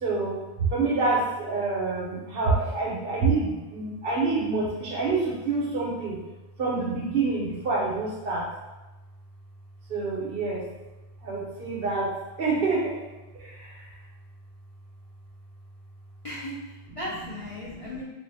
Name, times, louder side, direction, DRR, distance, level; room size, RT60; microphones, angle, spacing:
voice 1, 0.0-6.2 6.6-8.5 9.9-10.6 11.2-12.1 12.4-12.9 13.4-13.8 17.6-18.0, right 3 dB, 60° right, -3 dB, 1.0 m, -27 dB
voice 2, 16.2-18.0, left 1 dB, 40° left, -7 dB, 0.5 m, -36 dB
3.5 x 2.5 x 3.3 m, 1.1 s
omnidirectional pair, 1.1 m